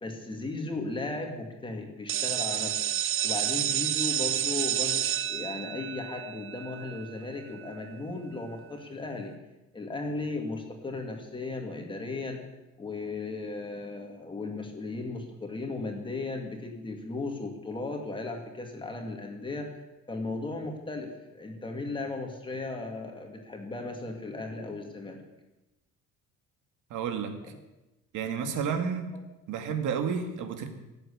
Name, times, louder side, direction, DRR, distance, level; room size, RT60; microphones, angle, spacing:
voice 1, 0.0-2.8 3.2-9.3 9.7-12.4 12.8-19.8 20.1-25.2 27.4-27.6, left 3 dB, 15° left, 3 dB, 2.2 m, -36 dB
sound 1, 2.1-7.7, right 11 dB, 40° right, 0.6 m, -30 dB
voice 2, 26.9-27.3 28.1-29.1 29.5-30.7, right 6 dB, 70° right, 6 dB, 2.2 m, -31 dB
17.5 x 8.0 x 10.0 m, 0.99 s
cardioid pair, 180°, 32 cm